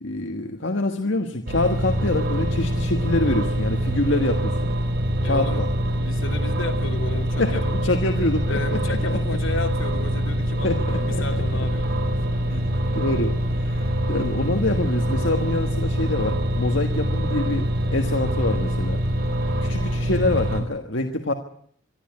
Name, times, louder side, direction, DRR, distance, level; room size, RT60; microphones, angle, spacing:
voice 1, 0.0-4.7 5.2-5.7 7.4-9.4 10.6-11.4 12.5-12.7 12.9-19.0 19.6-21.3, left 2 dB, 75° left, 5 dB, 1.5 m, -26 dB
sound 1, 1.5-20.6, equal, 55° right, 4.3 m, -24 dB
voice 2, 5.2-5.6 6.0-7.8 8.5-12.2, left 2 dB, 90° left, 4 dB, 3.1 m, -33 dB
24.5 x 13.0 x 9.7 m, 0.63 s
head